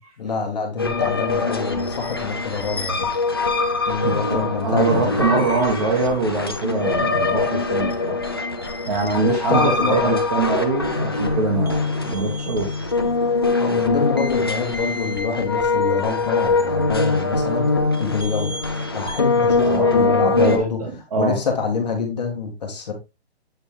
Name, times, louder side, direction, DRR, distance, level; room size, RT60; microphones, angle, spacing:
voice 1, 0.2-3.1 3.9-5.2 9.5-10.1 13.6-18.5 18.9-20.8 21.2-22.9, left 5 dB, 40° left, 1.7 m, -26 dB
sound 1, 0.8-20.6, left 3 dB, 25° left, 0.5 m, -23 dB
voice 2, 4.0-8.2 8.9-12.7 19.6-21.4, right 4 dB, 35° right, 1.5 m, -23 dB
8.1 x 4.1 x 3.5 m
hypercardioid pair, 175°, 32 cm